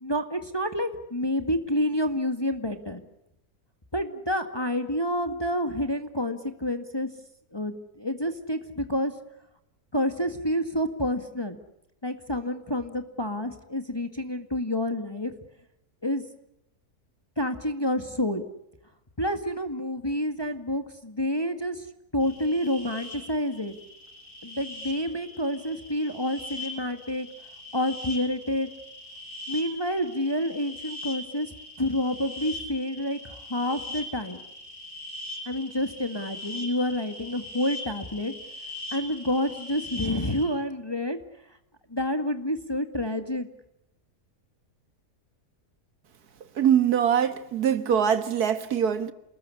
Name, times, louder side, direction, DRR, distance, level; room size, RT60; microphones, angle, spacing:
voice 1, 0.0-3.0 3.9-7.1 7.5-9.1 9.9-11.6 12.0-15.3 16.0-16.2 17.4-18.4 19.2-21.9 22.1-23.8 24.4-27.3 27.7-28.7 29.5-34.4 35.5-38.3 38.9-41.2 41.9-43.5, left 1 dB, 15° left, 1.9 m, -28 dB
sound 1, 22.2-40.5, left 2 dB, 60° left, 7.0 m, -41 dB
voice 2, 46.6-49.1, right 8 dB, 90° right, 2.0 m, -23 dB
29.0 x 20.5 x 9.9 m
omnidirectional pair, 1.6 m